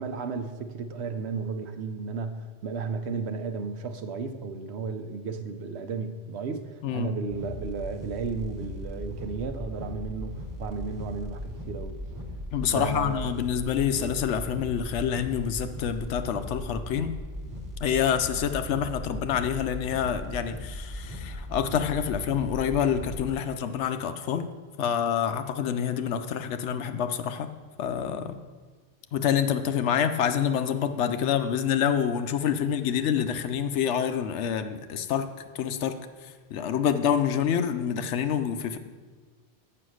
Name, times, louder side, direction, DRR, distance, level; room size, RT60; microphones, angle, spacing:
voice 1, 0.0-12.0 12.7-13.3, right 4 dB, 65° right, 8 dB, 0.9 m, -34 dB
sound 1, 7.3-23.3, equal, 20° right, 0.9 m, -38 dB
voice 2, 12.5-17.1 17.8-24.5 24.8-27.5 27.8-28.4 29.1-35.3 35.5-35.9 36.5-38.8, left 8 dB, 75° left, 9 dB, 0.9 m, -27 dB
7.8 x 6.0 x 6.3 m, 1.4 s
omnidirectional pair, 1.2 m